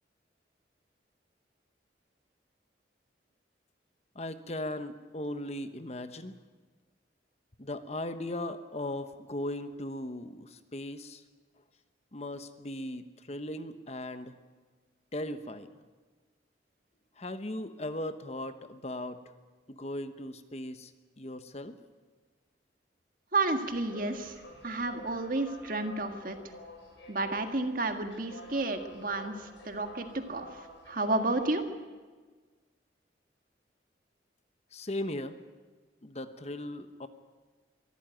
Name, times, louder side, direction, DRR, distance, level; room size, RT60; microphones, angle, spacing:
voice 1, 4.1-6.4 7.6-11.2 12.1-14.3 15.1-15.7 17.2-19.2 19.7-20.9 21.2-21.7 34.7-35.4 36.0-37.1, left 1 dB, 35° left, 10 dB, 1.0 m, -38 dB
voice 2, 23.3-24.4 24.6-26.4 27.1-30.5 30.9-31.6, right 2 dB, 50° right, 6 dB, 1.8 m, -31 dB
sound 1, 23.7-31.5, left 1 dB, 85° left, 7.6 m, -50 dB
23.5 x 14.0 x 9.2 m, 1.4 s
head